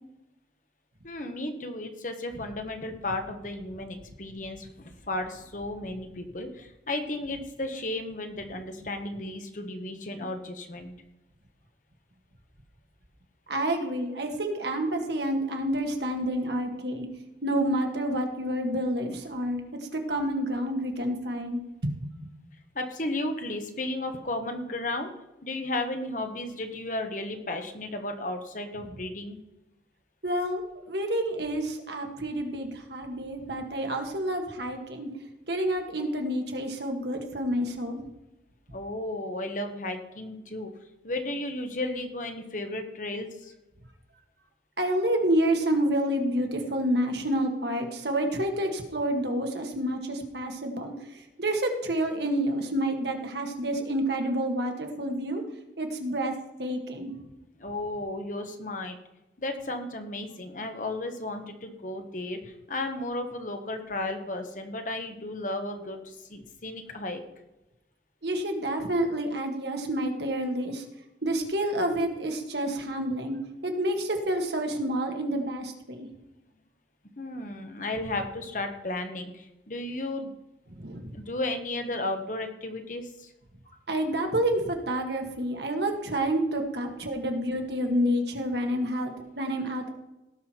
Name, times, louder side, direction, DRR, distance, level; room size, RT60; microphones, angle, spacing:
voice 1, 1.0-10.9 22.7-25.1 25.4-29.4 38.7-40.7 41.0-43.5 57.6-59.0 59.4-67.2 77.2-80.3 81.1-83.3 83.7-83.8, left 2 dB, 45° left, 5 dB, 1.4 m, -34 dB
voice 2, 13.5-17.1 17.4-19.6 19.9-22.1 30.2-35.1 35.5-38.0 44.8-55.4 55.8-56.3 56.6-57.1 68.2-70.8 71.2-73.4 73.6-76.1 80.8-81.1 83.9-89.9, right 1 dB, 65° right, 4 dB, 1.9 m, -29 dB
17.5 x 6.2 x 4.5 m, 0.94 s
head